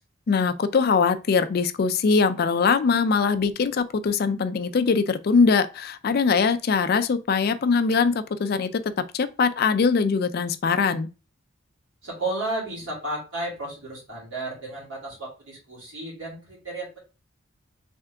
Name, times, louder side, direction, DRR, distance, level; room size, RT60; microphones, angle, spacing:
voice 1, 0.3-8.8 9.1-11.1, left 5 dB, 50° left, 0.3 m, -22 dB
voice 2, 12.0-17.0, right 2 dB, 65° right, 2.6 m, -33 dB
3.6 x 3.5 x 3.4 m
head